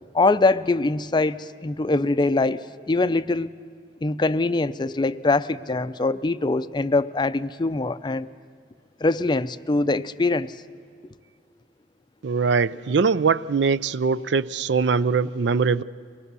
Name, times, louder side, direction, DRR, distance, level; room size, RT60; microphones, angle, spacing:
voice 1, 0.1-3.6 4.0-8.3 9.0-10.5, left 3 dB, 25° left, 13 dB, 0.5 m, -23 dB
voice 2, 12.2-15.8, right 5 dB, 75° right, 17 dB, 0.5 m, -22 dB
24.5 x 19.5 x 6.9 m, 2.2 s
head